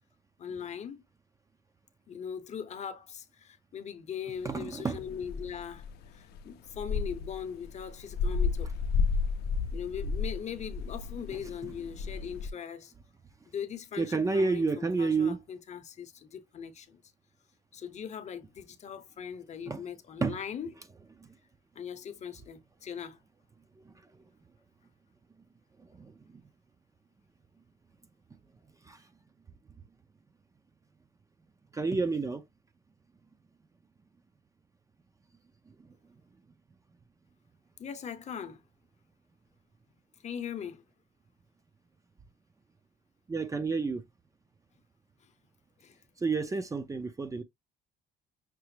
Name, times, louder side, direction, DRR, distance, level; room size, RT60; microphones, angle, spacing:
voice 1, 0.4-1.0 2.1-5.9 6.1-8.7 9.7-12.9 13.5-17.0 17.7-20.7 21.7-23.2 37.8-38.6 40.2-40.8 45.8-46.0, left 8 dB, 40° left, 0.8 m, -40 dB
sound 1, 4.4-12.5, left 5 dB, 70° left, 0.5 m, -32 dB
voice 2, 4.4-5.0 11.6-11.7 14.0-15.4 19.7-19.8 20.2-20.4 21.2-21.3 23.9-24.0 25.9-26.1 28.9-29.0 31.7-32.4 43.3-44.0 46.2-47.4, right 4 dB, 20° right, 0.5 m, -30 dB
5.9 x 2.0 x 3.2 m
cardioid pair, 110°, 17 cm